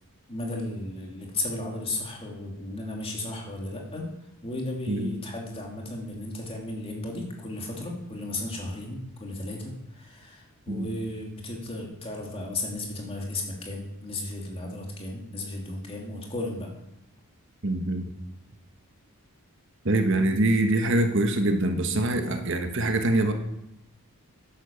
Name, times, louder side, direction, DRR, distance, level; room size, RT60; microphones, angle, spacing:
voice 1, 0.3-4.1 4.4-16.7, left 2 dB, 25° left, -1 dB, 2.8 m, -34 dB
voice 2, 17.6-18.1 19.8-23.3, right 1 dB, 55° right, 5 dB, 1.3 m, -24 dB
11.0 x 10.5 x 7.1 m, 0.88 s
head